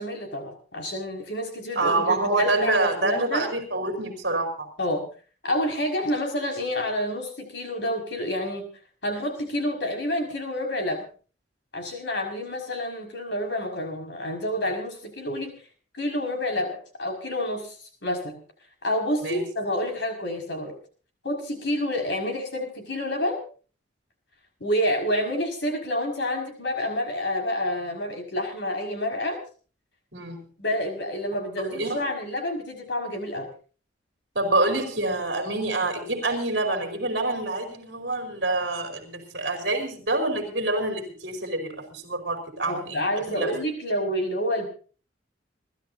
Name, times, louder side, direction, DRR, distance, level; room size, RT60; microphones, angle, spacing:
voice 1, 0.0-3.5 4.8-5.1 5.4-8.7 9.0-11.1 11.7-15.5 16.0-17.7 18.0-18.4 18.8-20.7 21.2-23.4 24.6-29.4 30.6-33.5 42.7-44.7, left 1 dB, 60° left, 3 dB, 5.9 m, -28 dB
voice 2, 1.7-4.7 19.2-19.4 30.1-30.4 31.6-32.0 34.3-43.5, right 2 dB, 55° right, 3 dB, 4.6 m, -26 dB
30.0 x 13.5 x 2.8 m, 0.39 s
head